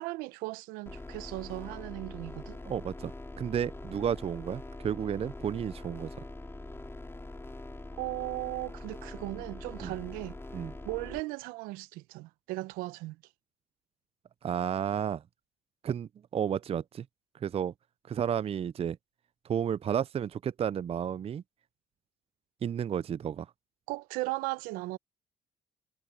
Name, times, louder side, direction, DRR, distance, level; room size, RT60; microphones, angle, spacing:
voice 1, 0.0-2.6 8.0-10.4 10.8-13.2 23.9-25.0, right 21 dB, 80° right, 0.8 m, -37 dB
sound 1, 0.9-11.2, left 2 dB, 15° left, 3.3 m, -43 dB
voice 2, 2.7-6.1 9.8-9.9 10.5-10.7 14.4-15.2 15.8-17.1 17.4-17.7 18.1-19.0 19.4-21.4 22.6-23.5, right 8 dB, 45° right, 0.5 m, -32 dB
hypercardioid pair, 50°, 15 cm